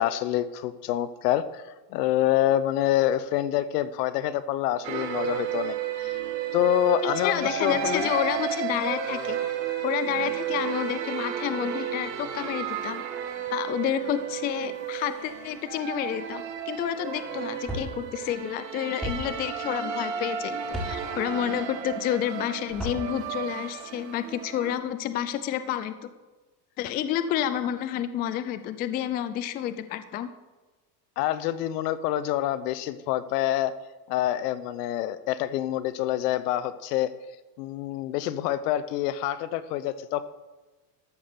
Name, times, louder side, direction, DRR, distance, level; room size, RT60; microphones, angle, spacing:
voice 1, 0.0-1.6 1.9-6.2 6.5-8.1 31.2-33.7 34.1-37.1 37.6-40.2, left 12 dB, 70° left, 15 dB, 0.9 m, -26 dB
sound 1, 4.8-24.7, right 9 dB, 85° right, 1.6 m, -33 dB
voice 2, 7.0-9.4 9.8-13.0 13.5-26.1 26.8-30.3, left 10 dB, 20° left, 12 dB, 0.3 m, -30 dB
sound 2, 17.7-17.9 19.0-19.2 20.7-20.9 22.7-23.0, equal, ahead, 3.9 m, -32 dB
13.0 x 5.9 x 6.8 m, 1.2 s
supercardioid pair, 125°, 48 cm